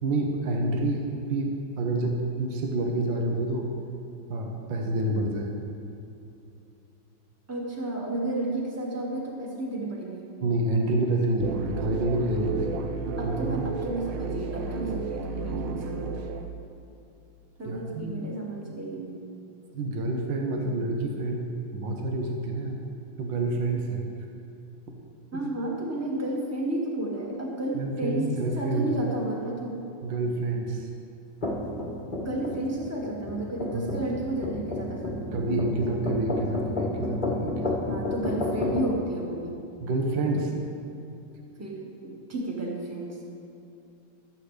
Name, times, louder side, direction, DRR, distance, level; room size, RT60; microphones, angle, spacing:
voice 1, 0.0-3.8 4.3-5.6 10.4-12.8 13.2-13.6 17.7-18.2 19.7-22.8 23.2-24.1 25.3-25.4 27.8-28.9 30.0-30.9 33.7-33.9 35.3-37.8 39.8-40.5, right 2 dB, 65° right, 1 dB, 1.8 m, -28 dB
voice 2, 7.5-10.3 13.2-16.3 17.6-19.2 25.3-29.8 32.2-35.6 37.9-39.6 40.2-40.6 41.6-43.2, right 2 dB, 10° right, -3 dB, 1.6 m, -32 dB
sound 1, 11.4-16.5, right 4 dB, 80° right, 1.6 m, -32 dB
sound 2, 31.4-38.9, left 2 dB, 25° left, 1.5 m, -31 dB
24.5 x 8.3 x 3.3 m, 2.7 s
omnidirectional pair, 2.3 m